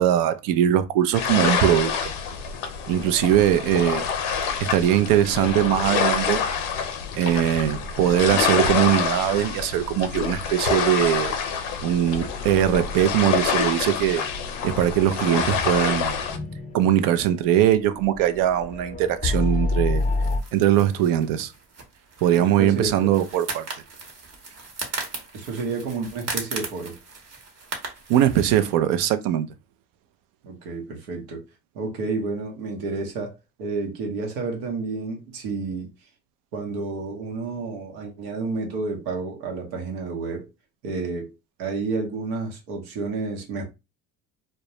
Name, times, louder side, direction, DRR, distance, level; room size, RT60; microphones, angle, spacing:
voice 1, 0.0-2.1 2.9-4.0 4.6-6.4 7.2-11.4 11.8-14.2 14.6-16.2 16.7-20.0 20.5-21.5 22.2-23.6 28.1-29.5, right 11 dB, 65° right, 0.5 m, -21 dB
sound 1, 1.1-16.4, left 6 dB, 85° left, 0.6 m, -27 dB
sound 2, 12.1-20.4, left 2 dB, 25° left, 0.4 m, -30 dB
sound 3, 19.9-28.7, right 3 dB, 45° right, 1.0 m, -37 dB
voice 2, 22.4-23.1 25.3-27.0 30.4-31.4 31.7-35.9 36.5-40.5 40.8-41.3 41.6-43.6, right 4 dB, 85° right, 0.9 m, -30 dB
2.2 x 2.1 x 2.7 m
supercardioid pair, 85°, 36 cm